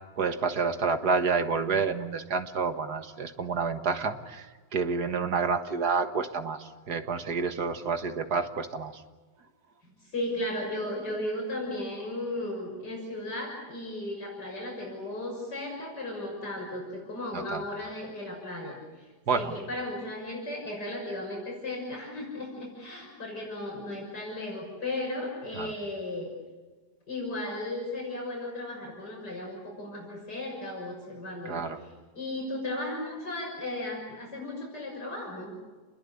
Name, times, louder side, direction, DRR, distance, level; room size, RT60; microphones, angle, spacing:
voice 1, 0.2-4.4 4.7-9.0 17.3-17.6 19.3-19.5 25.6-25.7 31.5-31.8, right 5 dB, 70° right, 8 dB, 2.1 m, -29 dB
voice 2, 10.0-26.3 27.1-35.6, left 1 dB, 80° left, -1 dB, 7.1 m, -35 dB
29.5 x 21.0 x 8.6 m, 1.3 s
omnidirectional pair, 1.8 m